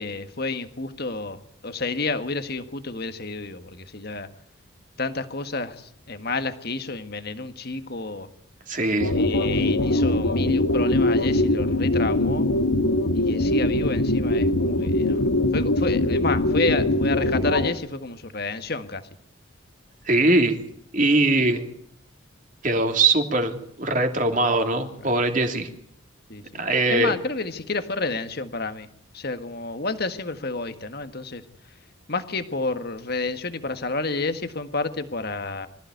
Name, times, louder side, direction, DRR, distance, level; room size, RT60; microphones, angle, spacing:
voice 1, 0.0-4.3 5.0-8.3 9.1-12.5 13.1-19.1 25.0-25.1 26.3-26.6 26.9-28.9 29.1-31.4 32.1-35.7, left 3 dB, 50° left, 9 dB, 1.6 m, -30 dB
voice 2, 8.7-9.1 20.0-20.6 20.9-21.6 22.6-25.7 26.6-27.1, right 2 dB, 40° right, 5 dB, 2.9 m, -21 dB
sound 1, 9.0-17.7, left 1 dB, 90° left, 2.1 m, -22 dB
24.5 x 15.0 x 9.4 m, 0.69 s
head